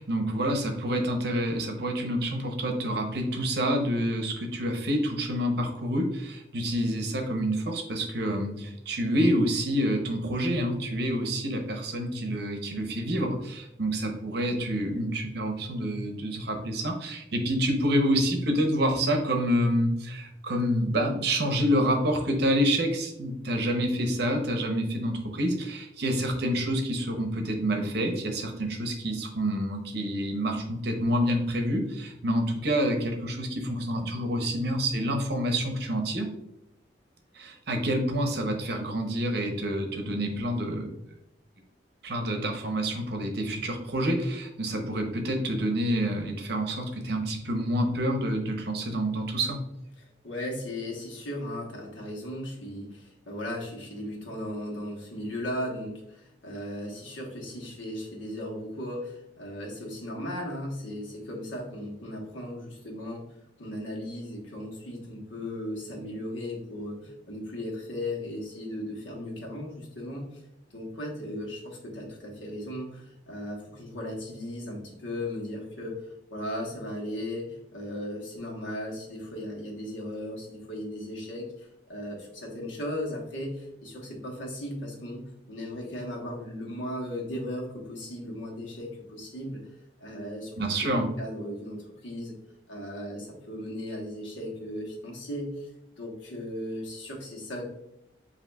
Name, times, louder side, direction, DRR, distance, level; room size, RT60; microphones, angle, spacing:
voice 1, 0.0-36.3 37.3-40.9 42.0-49.6 90.6-91.1, equal, 60° right, 4 dB, 0.7 m, -28 dB
voice 2, 50.0-63.3 63.6-70.4 70.7-89.6 90.0-90.5 90.8-92.3 92.7-95.7 96.0-97.7, left 1 dB, 80° left, -1 dB, 1.2 m, -37 dB
7.8 x 2.7 x 2.3 m, 0.83 s
head